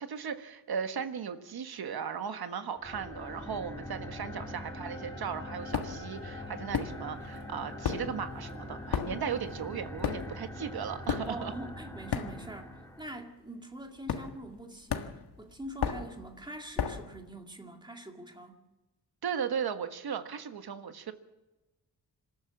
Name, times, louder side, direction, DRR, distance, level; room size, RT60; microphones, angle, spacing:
voice 1, 0.0-11.5 19.2-21.1, right 7 dB, 75° right, 8 dB, 1.6 m, -37 dB
sound 1, 2.4-10.5, left 2 dB, 35° left, 7.2 m, -52 dB
sound 2, 2.8-13.2, left 1 dB, 10° left, 1.8 m, -43 dB
sound 3, 5.7-6.1 6.7-7.4 7.6-12.8 13.0-13.3 14.1-14.6 14.9-17.1, left 7 dB, 80° left, 1.6 m, -35 dB
voice 2, 11.3-18.6, right 1 dB, 10° right, 3 dB, 2.1 m, -44 dB
27.0 x 13.0 x 7.3 m, 1.1 s
wide cardioid pair, 180°, 38 cm